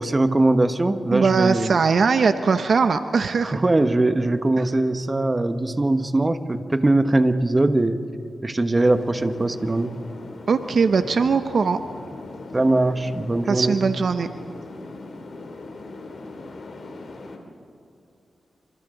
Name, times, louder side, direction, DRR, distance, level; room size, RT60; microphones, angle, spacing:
voice 1, 0.0-1.8 3.4-8.0 8.4-9.9 12.5-13.8, right 2 dB, 25° right, 9 dB, 1.4 m, -21 dB
voice 2, 1.1-3.6 4.6-4.7 10.5-11.8 13.5-14.3, right 5 dB, 65° right, 9 dB, 0.8 m, -20 dB
sound 1, 8.7-17.4, left 2 dB, 65° left, 3.2 m, -39 dB
28.5 x 26.5 x 3.9 m, 2.6 s
cardioid pair, 60°, 0 cm